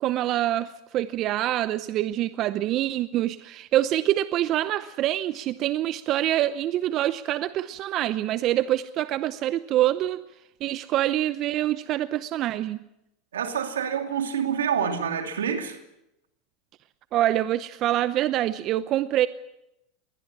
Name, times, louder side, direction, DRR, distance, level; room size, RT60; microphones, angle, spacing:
voice 1, 0.0-10.2 10.6-12.8 17.1-19.3, right 13 dB, 50° right, 0.7 m, -25 dB
voice 2, 13.3-15.8, right 7 dB, 85° right, 2.7 m, -27 dB
22.0 x 19.0 x 7.4 m
hypercardioid pair, 95°, 0 cm